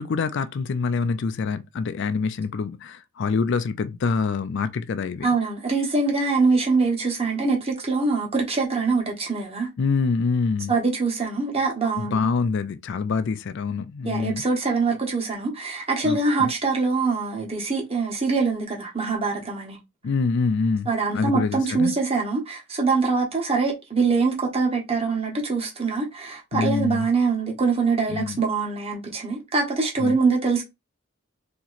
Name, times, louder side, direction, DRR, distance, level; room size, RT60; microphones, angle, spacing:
voice 1, 0.0-5.3 9.8-10.7 12.0-14.4 16.0-16.5 20.0-21.9 26.5-27.1 28.1-28.4 30.0-30.2, left 4 dB, 60° left, 0.4 m, -25 dB
voice 2, 5.2-9.7 10.7-12.3 14.0-19.8 20.9-30.6, right 4 dB, 30° right, 1.2 m, -24 dB
2.9 x 2.9 x 4.0 m
head